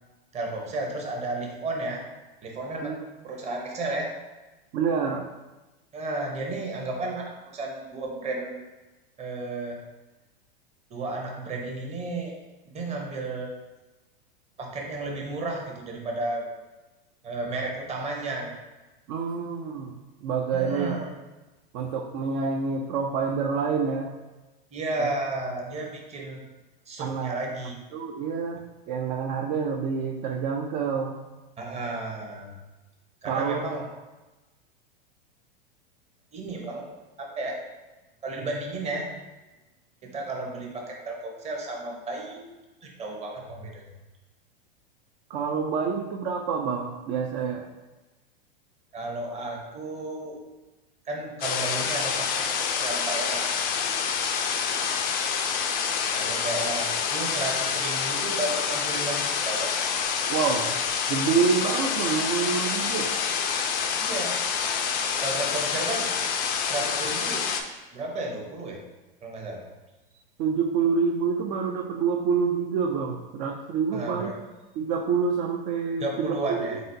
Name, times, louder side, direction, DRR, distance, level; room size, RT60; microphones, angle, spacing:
voice 1, 0.3-2.0 2.4-2.9 3.2-4.1 5.9-8.6 9.2-9.8 10.9-12.3 12.7-13.5 14.6-16.4 17.2-18.5 20.5-21.1 24.7-26.4 26.9-27.7 31.6-32.6 33.2-33.9 36.3-36.9 37.2-37.5 38.2-39.1 40.1-42.6 42.8-43.8 48.9-50.4 51.0-53.8 56.1-59.7 64.0-64.4 65.2-66.1 66.6-67.5 67.9-68.8 69.2-69.6 73.9-74.4 76.0-76.8, right 2 dB, 25° right, 0 dB, 0.8 m, -33 dB
voice 2, 4.7-5.3 19.1-20.9 21.7-24.1 25.0-25.1 27.0-27.4 27.9-28.6 28.9-31.1 33.2-33.7 45.3-47.7 60.3-60.7 61.1-63.1 70.4-74.3 74.8-76.8, right 5 dB, 40° right, 2 dB, 0.4 m, -27 dB
sound 1, 51.4-67.6, left 6 dB, 30° left, 0.4 m, -27 dB
4.1 x 3.7 x 2.7 m, 1.1 s
hypercardioid pair, 115°, 29 cm